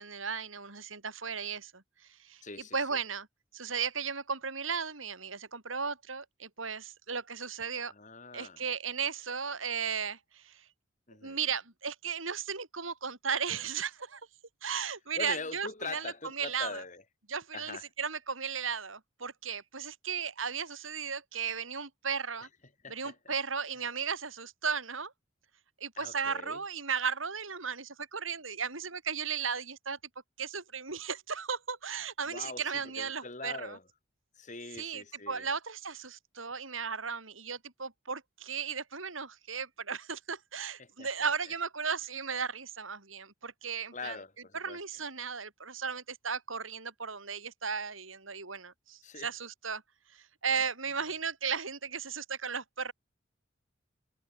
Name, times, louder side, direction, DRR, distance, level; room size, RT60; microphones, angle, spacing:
voice 1, 0.0-2.4 2.7-3.3 3.5-7.9 8.3-10.7 11.2-14.2 14.6-16.8 17.3-22.5 22.9-25.1 25.8-30.0 30.4-33.8 34.8-44.2 44.5-49.8 50.1-52.9, right 6 dB, 85° right, 4.7 m, -35 dB
voice 2, 2.4-3.0 7.7-8.6 11.1-11.4 15.2-17.0 17.5-17.9 22.8-23.3 26.0-26.6 32.3-33.8 34.3-35.5 40.8-41.3 43.9-44.8 49.0-49.3, left 3 dB, 40° left, 7.2 m, -43 dB
head